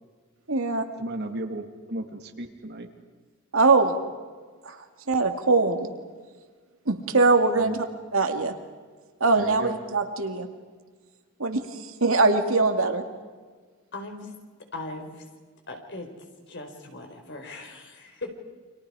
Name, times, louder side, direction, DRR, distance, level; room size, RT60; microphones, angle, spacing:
voice 1, 0.5-0.8 3.5-4.0 4.7-4.8 5.1-5.9 6.9-7.9 8.1-8.5 9.2-10.5 11.4-11.6 12.0-13.0, right 3 dB, 75° right, 5 dB, 2.4 m, -22 dB
voice 2, 1.0-2.9 7.5-7.8 9.4-9.8, right 1 dB, 50° right, 5 dB, 2.5 m, -34 dB
voice 3, 13.9-14.3 14.7-15.2 15.7-16.1 16.5-18.3, left 2 dB, 55° left, 4 dB, 4.6 m, -39 dB
30.0 x 26.0 x 4.9 m, 1.5 s
head